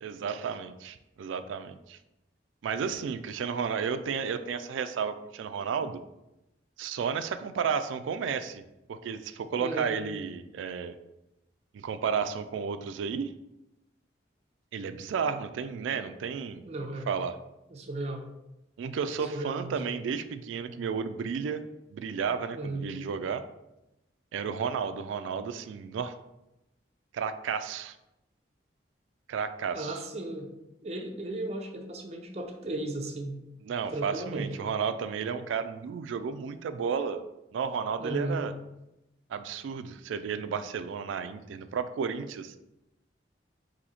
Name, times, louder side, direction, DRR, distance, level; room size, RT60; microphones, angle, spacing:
voice 1, 0.0-2.0 2.6-6.0 6.8-8.6 8.9-10.9 11.7-13.3 14.7-16.6 17.1-17.4 18.8-21.6 21.9-23.4 24.3-26.1 27.1-28.0 29.3-30.0 33.6-37.2 37.5-38.5 39.3-42.5, right 6 dB, 90° right, 10 dB, 0.3 m, -32 dB
voice 2, 9.6-10.0 16.6-17.1 17.7-18.3 19.3-19.8 22.5-22.9 29.7-30.5 30.8-33.4 33.9-34.5 38.0-38.4, right 2 dB, 35° right, 3 dB, 0.5 m, -35 dB
4.1 x 2.7 x 4.2 m, 0.92 s
head